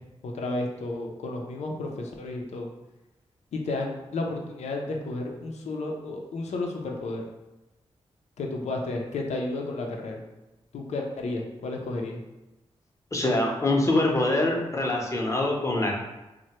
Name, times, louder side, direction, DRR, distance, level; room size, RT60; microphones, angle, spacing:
voice 1, 0.2-2.7 3.5-7.2 8.4-10.2 10.7-12.2, left 2 dB, 75° left, 1 dB, 0.5 m, -32 dB
voice 2, 13.1-16.0, left 2 dB, 25° left, -1 dB, 0.8 m, -24 dB
3.1 x 2.1 x 2.9 m, 1.0 s
cardioid pair, 50°, 11 cm